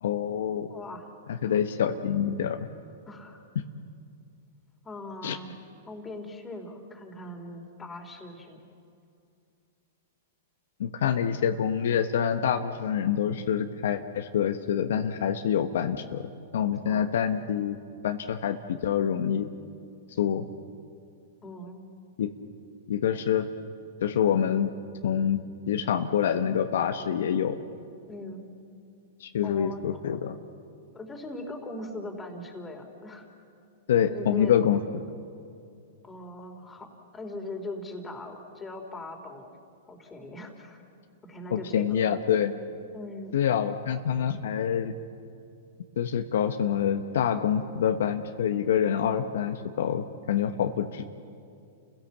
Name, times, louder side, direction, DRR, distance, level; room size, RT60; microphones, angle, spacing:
voice 1, 0.0-0.7 1.3-2.7 3.5-3.6 5.2-5.4 10.8-16.3 16.5-17.8 18.0-19.5 20.2-20.5 22.2-22.3 22.9-23.5 24.0-24.7 25.0-27.6 29.2-30.4 33.9-34.8 41.5-42.5 43.3-44.9 46.0-51.0, left 8 dB, 75° left, 7 dB, 1.1 m, -26 dB
voice 2, 0.7-1.1 3.1-3.4 4.8-5.5 5.9-8.6 16.9-17.1 21.4-21.8 28.1-28.4 29.4-30.0 30.9-33.3 34.0-34.6 36.0-39.5 39.9-40.8 41.3-42.2 42.9-43.4, left 2 dB, 15° left, 3 dB, 3.3 m, -40 dB
29.5 x 16.5 x 7.3 m, 2.5 s
hypercardioid pair, 125°, 0 cm